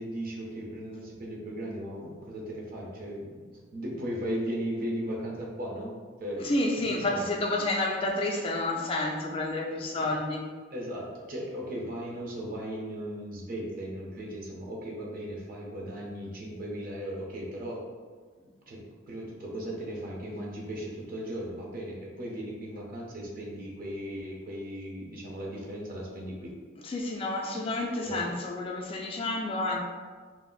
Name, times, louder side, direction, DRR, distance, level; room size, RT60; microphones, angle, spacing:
voice 1, 0.0-6.5 6.9-7.2 9.9-10.1 10.7-17.8 18.7-18.8 19.1-26.5 28.1-28.3, equal, 50° right, -3 dB, 0.7 m, -37 dB
voice 2, 6.4-10.4 26.8-29.8, left 2 dB, 30° left, -1 dB, 0.3 m, -30 dB
2.4 x 2.0 x 3.7 m, 1.5 s
head